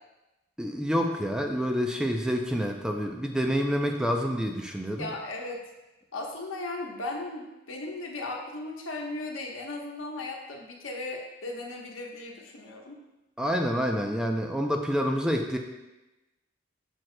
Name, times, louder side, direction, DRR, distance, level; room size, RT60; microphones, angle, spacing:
voice 1, 0.6-5.0 13.4-15.6, equal, 5° right, 2 dB, 0.4 m, -28 dB
voice 2, 5.0-5.6 6.1-13.0, left 2 dB, 80° left, 0 dB, 1.1 m, -36 dB
8.8 x 6.3 x 2.2 m, 1.0 s
head